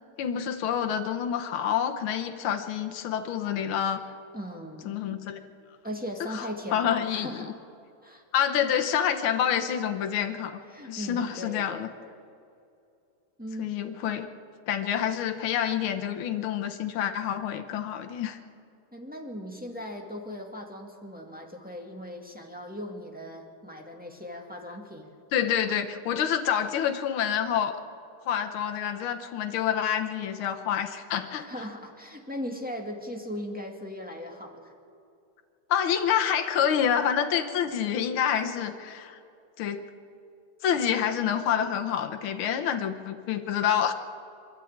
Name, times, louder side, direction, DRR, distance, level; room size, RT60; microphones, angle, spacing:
voice 1, 0.2-4.0 4.9-5.4 6.3-7.5 8.3-11.9 13.6-14.3 14.7-18.4 25.3-27.8 28.3-31.5 35.7-39.2 39.6-39.8 40.6-43.9, left 9 dB, 70° left, 5 dB, 1.8 m, -27 dB
voice 2, 4.3-4.9 5.8-7.5 8.0-8.2 10.7-11.9 13.4-13.8 18.9-25.1 31.3-34.7, equal, 5° right, 0 dB, 1.8 m, -38 dB
26.0 x 12.0 x 8.7 m, 2.6 s
omnidirectional pair, 2.4 m